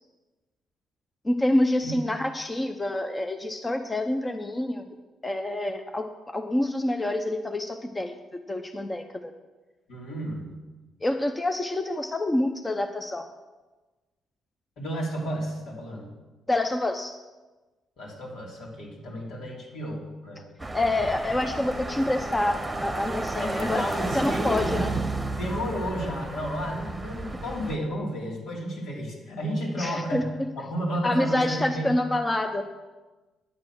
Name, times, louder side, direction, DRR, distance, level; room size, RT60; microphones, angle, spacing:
voice 1, 1.2-4.8 5.2-8.2 8.5-9.3 11.0-13.2 16.5-17.1 20.7-23.8 24.1-24.9 29.8-30.5 31.0-32.6, left 1 dB, 20° left, 6 dB, 0.8 m, -27 dB
voice 2, 9.9-10.5 14.8-16.1 18.0-20.4 23.4-25.0 25.4-30.3 30.6-31.9, equal, 80° left, -3 dB, 3.4 m, -32 dB
sound 1, 20.6-27.8, right 2 dB, 10° right, 1.1 m, -32 dB
9.7 x 8.2 x 6.2 m, 1.2 s
cardioid pair, 90°, 0 cm